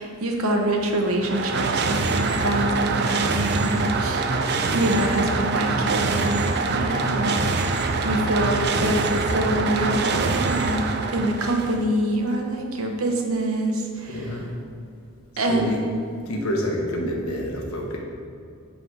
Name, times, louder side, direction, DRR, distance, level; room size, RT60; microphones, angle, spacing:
voice 1, 0.0-4.3 4.7-14.3 15.4-15.7, right 1 dB, 80° right, 2 dB, 0.9 m, -25 dB
sound 1, 1.0-11.9, right 3 dB, 50° right, 0.4 m, -24 dB
voice 2, 6.8-7.2 12.3-12.4 14.1-14.5 15.3-15.8 16.3-18.0, equal, 85° left, 0 dB, 1.1 m, -28 dB
7.4 x 3.8 x 4.7 m, 2.4 s
head